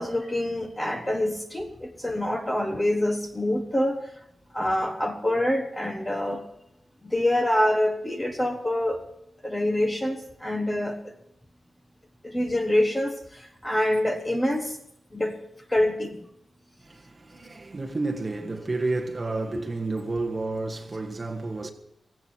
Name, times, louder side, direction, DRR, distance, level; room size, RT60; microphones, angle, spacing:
voice 1, 0.0-4.1 4.5-6.4 7.0-9.0 9.4-11.0 12.2-14.8 15.1-15.4 15.7-16.2 19.5-19.6, left 1 dB, 10° left, 1.3 m, -26 dB
voice 2, 16.8-21.7, right 3 dB, 25° right, 1.7 m, -30 dB
17.5 x 16.0 x 4.6 m
wide cardioid pair, 175°, 0 cm